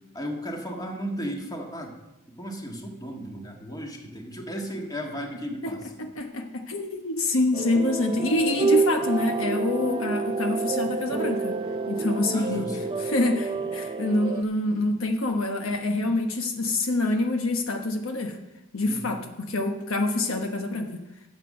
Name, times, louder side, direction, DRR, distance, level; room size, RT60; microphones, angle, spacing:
voice 1, 0.1-1.9 2.4-6.0 12.3-12.9 18.8-19.1, equal, 20° left, 1 dB, 1.7 m, -35 dB
voice 2, 6.0-11.5 11.9-12.6 13.0-18.4 18.7-21.0, left 2 dB, 70° left, 4 dB, 1.1 m, -26 dB
sound 1, 7.5-14.4, right 4 dB, 25° right, 0.5 m, -28 dB
12.0 x 7.5 x 6.5 m, 0.97 s
head